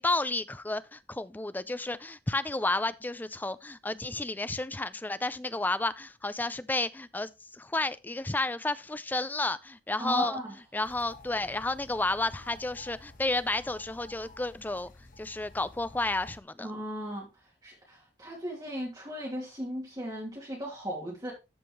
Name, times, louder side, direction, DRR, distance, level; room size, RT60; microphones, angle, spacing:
voice 1, 0.0-10.4 10.7-14.9 15.2-16.7, left 2 dB, 10° left, 0.4 m, -31 dB
voice 2, 10.0-10.5 16.6-17.3 17.6-21.3, equal, 20° right, 2.8 m, -36 dB
sound 1, 10.8-16.4, left 2 dB, 50° left, 1.6 m, -51 dB
13.5 x 5.2 x 3.1 m
head